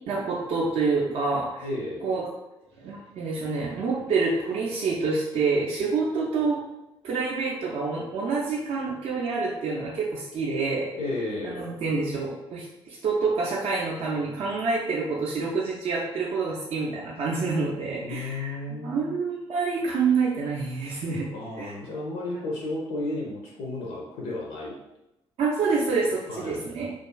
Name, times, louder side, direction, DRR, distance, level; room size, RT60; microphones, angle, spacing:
voice 1, 0.1-1.7 2.0-2.3 2.8-6.6 7.0-10.9 11.4-21.3 21.6-21.8 25.4-26.9, right 4 dB, 45° right, -4 dB, 0.4 m, -27 dB
voice 2, 1.6-2.0 10.9-11.7 18.0-19.1 21.3-24.7 26.3-26.6, left 2 dB, 60° left, -2 dB, 0.4 m, -33 dB
2.4 x 2.3 x 2.2 m, 0.93 s
figure-of-eight pair, 45°, 14 cm